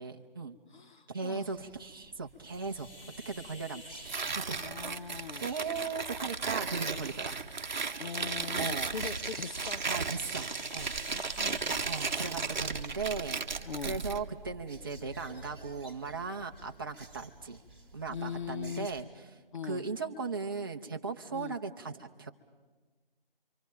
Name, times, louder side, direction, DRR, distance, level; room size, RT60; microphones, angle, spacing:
voice 1, 0.0-0.6 1.1-2.9 3.2-4.7 5.1-7.4 8.6-8.9 9.9-10.9 11.9-17.6 17.9-19.1 19.6-22.3, right 4 dB, 25° right, 3 dB, 0.7 m, -38 dB
voice 2, 0.7-1.5 4.6-5.5 8.0-9.8 11.1-12.5 13.6-14.0 18.1-18.9 19.5-19.8 21.3-21.6, left 6 dB, 55° left, 12 dB, 0.8 m, -41 dB
sound 1, 1.4-19.0, right 3 dB, 10° left, 2.4 m, -50 dB
sound 2, 2.4-16.6, left 1 dB, 70° left, 7.5 m, -53 dB
Tearing, 4.0-14.2, right 4 dB, 50° right, 0.9 m, -35 dB
28.0 x 24.5 x 5.2 m, 1.4 s
figure-of-eight pair, 160°, 29 cm